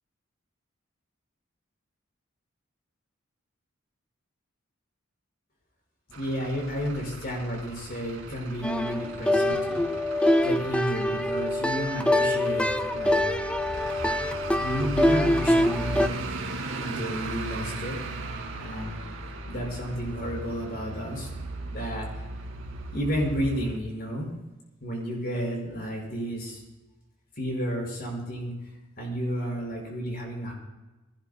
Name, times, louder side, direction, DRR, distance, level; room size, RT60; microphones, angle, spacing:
Truck / Idling, 6.1-23.8, right 2 dB, 90° right, 2.2 m, -37 dB
voice 1, 6.2-9.8 10.4-13.2 14.6-16.2 16.5-18.0 18.5-18.9 19.4-21.3 21.7-22.1 22.9-24.3 24.8-26.6 27.4-28.5 29.0-30.5, equal, 50° left, -1 dB, 5.9 m, -32 dB
sound 1, 8.6-16.1, left 1 dB, 5° left, 0.4 m, -25 dB
23.0 x 17.0 x 2.3 m, 1.1 s
head